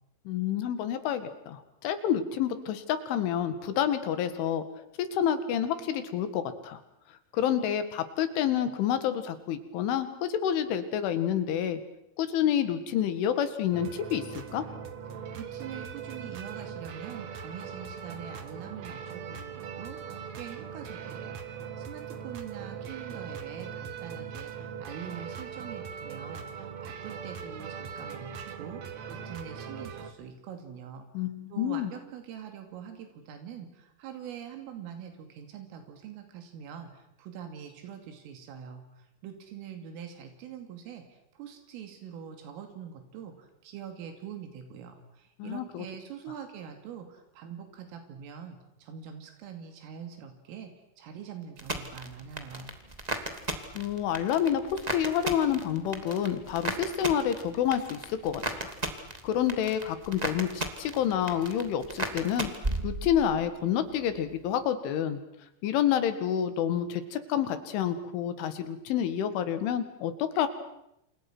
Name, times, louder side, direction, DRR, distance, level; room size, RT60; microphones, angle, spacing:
voice 1, 0.3-4.6 5.0-6.8 7.3-11.8 12.2-14.6 31.1-31.9 45.4-45.9 53.8-58.7 59.2-62.5 62.8-65.2 65.6-70.5, left 9 dB, 75° left, 11 dB, 4.4 m, -28 dB
sound 1, 13.7-30.1, right 7 dB, 60° right, 1.9 m, -40 dB
voice 2, 15.1-21.4 21.8-52.8, right 8 dB, 85° right, 6 dB, 5.1 m, -44 dB
sound 2, 51.6-63.5 63.8-64.4, right 2 dB, 20° right, 1.1 m, -36 dB
29.0 x 28.0 x 6.2 m, 0.80 s
omnidirectional pair, 5.7 m